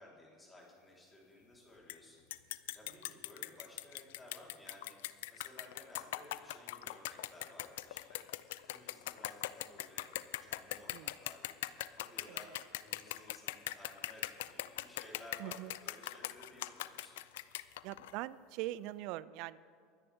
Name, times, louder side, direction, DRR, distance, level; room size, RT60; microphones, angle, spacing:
voice 1, 0.0-17.2, left 1 dB, 15° left, -4 dB, 4.0 m, -57 dB
sound 1, 1.9-2.0 2.3-18.1, left 15 dB, 80° left, 0.4 m, -41 dB
voice 2, 15.4-15.7 17.8-19.6, right 16 dB, 65° right, 19 dB, 0.4 m, -42 dB
23.5 x 9.9 x 3.6 m, 2.4 s
supercardioid pair, 100°, 0 cm